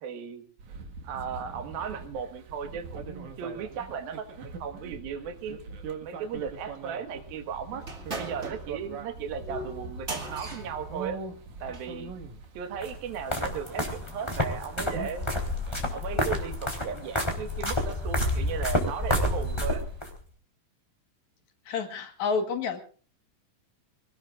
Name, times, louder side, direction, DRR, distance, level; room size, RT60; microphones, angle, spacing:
voice 1, 0.0-0.4 1.0-5.6 6.0-7.8 8.2-11.2 11.6-12.1 12.6-15.3 15.9-19.9, right 7 dB, 90° right, 7 dB, 3.5 m, -36 dB
sound 1, 0.6-20.1, right 4 dB, 60° right, 3.0 m, -43 dB
sound 2, 7.8-12.0, right 2 dB, 25° right, 2.0 m, -40 dB
sound 3, 12.8-20.1, left 1 dB, 10° left, 3.2 m, -29 dB
voice 2, 21.7-22.8, left 5 dB, 60° left, 7 dB, 2.7 m, -29 dB
26.0 x 18.5 x 2.5 m, 0.39 s
omnidirectional pair, 4.1 m